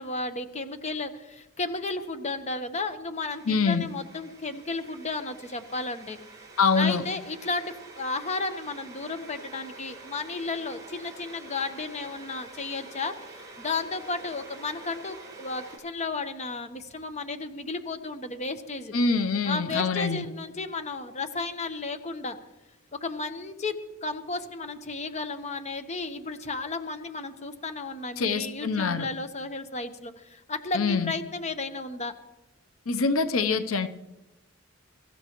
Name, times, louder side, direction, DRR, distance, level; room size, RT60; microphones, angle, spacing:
voice 1, 0.0-6.2 6.8-19.0 19.5-22.4 22.9-32.1, left 3 dB, 35° left, 8 dB, 1.0 m, -33 dB
sound 1, 3.3-15.8, right 3 dB, 15° right, 4.1 m, -47 dB
voice 2, 3.5-3.8 6.6-7.0 18.9-20.2 28.2-29.1 30.7-31.1 32.9-33.9, left 4 dB, 85° left, 10 dB, 0.7 m, -25 dB
23.5 x 14.0 x 3.1 m, 1.0 s
head